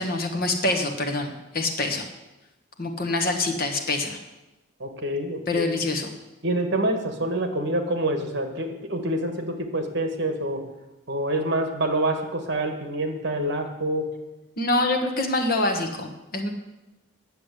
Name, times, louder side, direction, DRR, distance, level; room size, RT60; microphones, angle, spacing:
voice 1, 0.0-2.1 2.8-4.2 5.5-6.1 14.6-16.5, left 2 dB, 45° left, 4 dB, 1.5 m, -25 dB
voice 2, 4.8-5.7 6.4-10.6 11.1-14.0, right 1 dB, 55° right, 6 dB, 1.5 m, -26 dB
10.0 x 7.4 x 8.3 m, 1.0 s
head